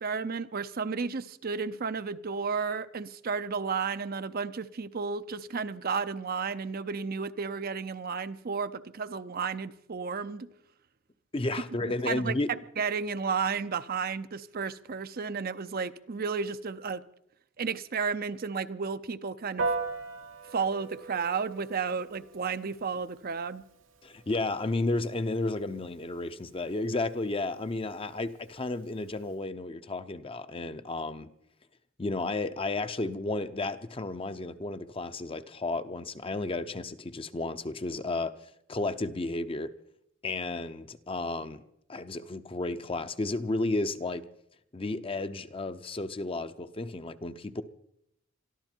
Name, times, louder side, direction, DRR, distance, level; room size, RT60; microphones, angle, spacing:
voice 1, 0.0-10.5 12.1-12.3 12.8-17.0 17.6-19.7 20.5-23.6, right 5 dB, 50° right, 0.6 m, -32 dB
voice 2, 11.3-12.5 24.0-31.3 32.0-38.3 38.7-39.7 40.2-41.6 41.9-44.2 44.7-47.6, left 2 dB, 30° left, 0.7 m, -32 dB
Piano, 19.6-29.3, right 3 dB, 90° right, 1.5 m, -41 dB
22.5 x 13.5 x 4.5 m
head